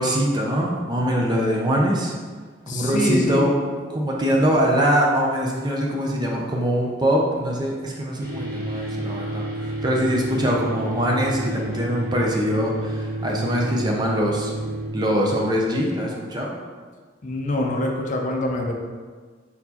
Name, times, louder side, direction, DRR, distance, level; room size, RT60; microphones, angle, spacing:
voice 1, 0.0-2.1 2.7-3.5 3.9-14.5 14.9-16.5, equal, 20° right, -2 dB, 0.5 m, -23 dB
voice 2, 2.7-3.5 4.3-4.5 17.2-18.7, left 1 dB, 40° left, 1 dB, 0.5 m, -25 dB
sound 1, 8.2-14.9, right 1 dB, 50° right, 1.2 m, -30 dB
4.1 x 3.9 x 2.8 m, 1.5 s
head